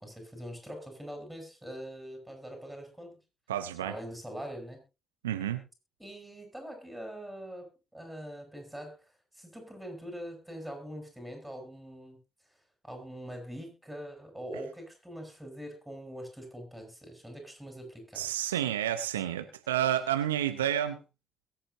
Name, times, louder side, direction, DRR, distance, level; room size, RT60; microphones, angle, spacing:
voice 1, 0.0-3.2 3.8-4.8 6.0-9.0 9.3-12.2 12.8-18.3, equal, 5° right, 3 dB, 7.4 m, -43 dB
voice 2, 3.5-4.0 5.2-5.6 18.1-21.0, right 11 dB, 85° right, 10 dB, 0.8 m, -30 dB
22.0 x 8.6 x 2.8 m, 0.28 s
figure-of-eight pair, 45°, 0 cm